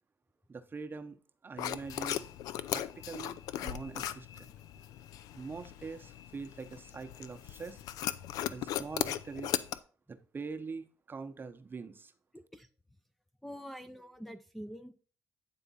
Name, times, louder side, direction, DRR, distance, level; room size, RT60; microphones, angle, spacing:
voice 1, 0.5-1.2 1.4-2.2 2.7-4.5 5.3-7.8 8.5-9.6 10.1-12.1, right 4 dB, 35° right, 8 dB, 0.7 m, -43 dB
sound 1, 1.6-9.8, left 12 dB, 85° left, 0.3 m, -38 dB
voice 2, 12.3-12.7 13.4-14.9, equal, 5° left, 6 dB, 0.4 m, -45 dB
9.1 x 3.5 x 4.1 m, 0.40 s
supercardioid pair, 70°, 6 cm